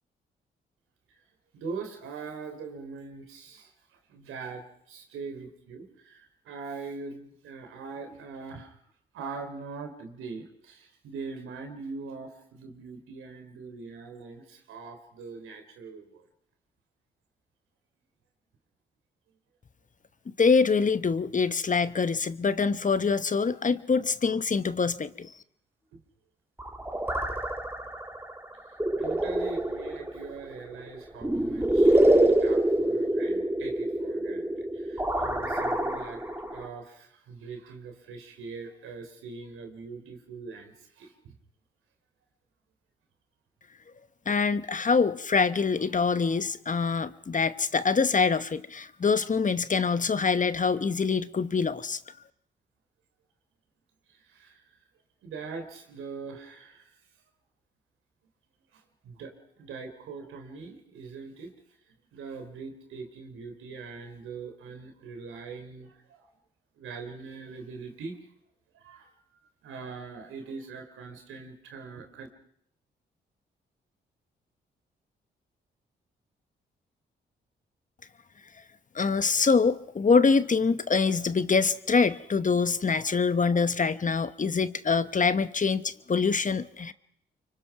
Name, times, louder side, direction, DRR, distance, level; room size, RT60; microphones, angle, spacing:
voice 1, 1.5-8.8 9.1-16.3 25.9-26.0 29.0-36.2 36.5-41.4 54.1-54.8 55.2-57.0 58.7-61.5 62.1-66.3 66.8-68.3 68.7-69.1 69.6-72.3, right 4 dB, 85° right, 5 dB, 3.4 m, -42 dB
voice 2, 20.4-25.3 44.3-52.0 78.9-86.9, left 5 dB, 40° left, 13 dB, 1.1 m, -25 dB
sound 1, 26.6-36.7, right 1 dB, 10° right, 2.9 m, -26 dB
24.5 x 24.5 x 5.9 m, 0.72 s
supercardioid pair, 50°, 21 cm